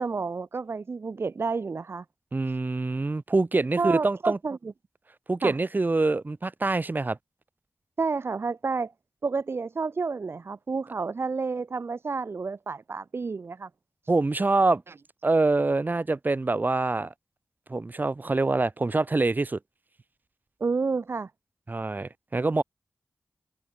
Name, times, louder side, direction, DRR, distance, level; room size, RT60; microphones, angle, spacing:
voice 1, 0.0-2.0 3.8-4.6 5.4-5.6 8.0-8.9 9.2-13.7 20.6-21.3, right 4 dB, 75° right, 5.8 m, -30 dB
voice 2, 2.3-4.4 5.3-7.2 14.1-14.8 15.2-17.1 17.7-19.6 21.7-22.6, right 3 dB, 45° right, 3.6 m, -25 dB
cardioid pair, 50°, 4 cm